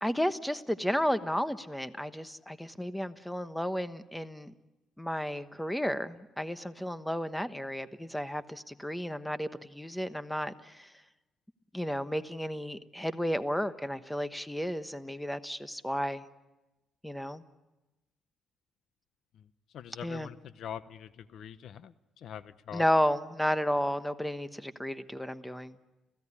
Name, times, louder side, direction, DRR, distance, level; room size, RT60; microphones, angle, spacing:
voice 1, 0.0-4.5 5.0-10.9 11.7-16.2 17.0-17.4 20.0-20.3 22.7-25.8, equal, 5° left, 11 dB, 1.2 m, -32 dB
voice 2, 19.3-22.8, left 9 dB, 70° left, 15 dB, 0.8 m, -44 dB
29.5 x 16.5 x 9.9 m, 1.1 s
cardioid pair, 90°, 0 cm